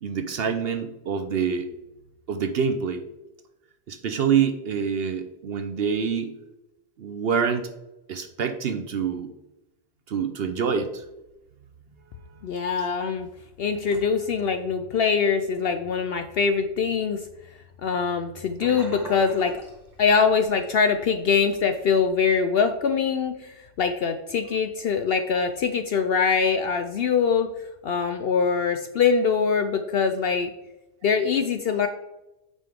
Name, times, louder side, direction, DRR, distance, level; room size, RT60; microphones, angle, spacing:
voice 1, 0.0-1.7 2.3-3.0 3.9-6.4 7.0-7.7 8.1-9.3 10.1-11.0, right 6 dB, 55° right, 8 dB, 0.7 m, -26 dB
voice 2, 12.4-13.3 13.6-17.3 17.8-19.6 20.0-27.5 27.8-30.5 31.0-31.9, left 6 dB, 65° left, 8 dB, 0.6 m, -23 dB
Sink (filling or washing), 18.6-20.6 20.9-21.2 21.6-21.7, right 2 dB, ahead, 2.6 m, -41 dB
9.1 x 5.4 x 3.6 m, 0.97 s
omnidirectional pair, 1.4 m